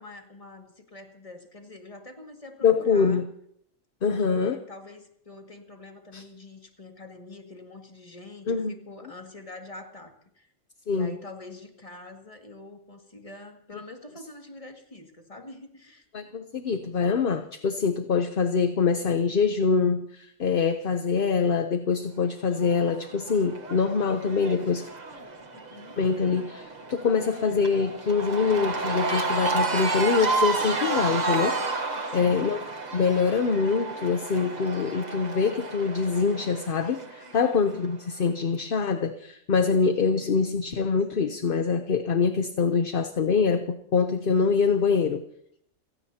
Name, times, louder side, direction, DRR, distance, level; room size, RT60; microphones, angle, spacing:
voice 1, 0.0-3.2 4.0-10.5 10.9-16.1 25.5-26.0 32.1-32.6 37.4-37.6, left 2 dB, 25° left, 2 dB, 2.2 m, -45 dB
voice 2, 2.6-3.3 4.0-4.6 6.1-6.2 8.5-8.7 10.9-11.1 16.1-24.9 26.0-31.6 32.1-32.6 32.9-45.2, left 5 dB, 45° left, 8 dB, 0.9 m, -24 dB
Cheering / Crowd, 22.6-37.9, right 3 dB, 35° right, 1.3 m, -31 dB
30.0 x 17.0 x 2.9 m, 0.69 s
omnidirectional pair, 1.4 m